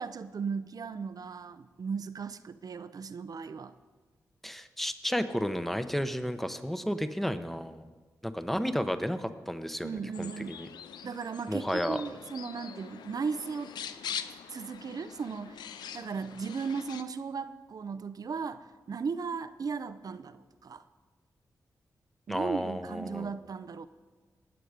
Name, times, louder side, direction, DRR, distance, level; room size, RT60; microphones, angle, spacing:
voice 1, 0.0-3.7 9.8-10.6 11.0-13.7 14.5-20.8 22.3-23.9, right 5 dB, 60° right, 12 dB, 0.6 m, -36 dB
voice 2, 4.4-7.8 8.2-10.7 11.5-12.0 22.3-23.3, equal, 5° left, 10 dB, 1.0 m, -32 dB
sound 1, 10.1-17.0, left 8 dB, 90° left, 0.5 m, -43 dB
18.5 x 6.9 x 5.1 m, 1.3 s
supercardioid pair, 45°, 7 cm